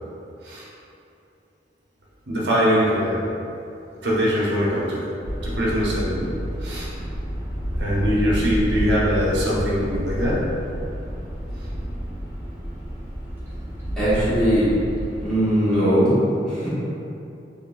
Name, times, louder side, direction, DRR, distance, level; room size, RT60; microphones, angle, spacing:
voice 1, 2.3-3.3 4.0-5.0 5.4-6.3 6.6-6.9 7.8-10.5, equal, 75° right, -6 dB, 0.8 m, -22 dB
sound 1, 5.2-15.2, equal, 15° right, 1.0 m, -29 dB
voice 2, 14.0-14.7 15.2-16.1 16.5-16.7, equal, 5° left, -14 dB, 1.3 m, -20 dB
3.8 x 3.3 x 2.4 m, 2.7 s
head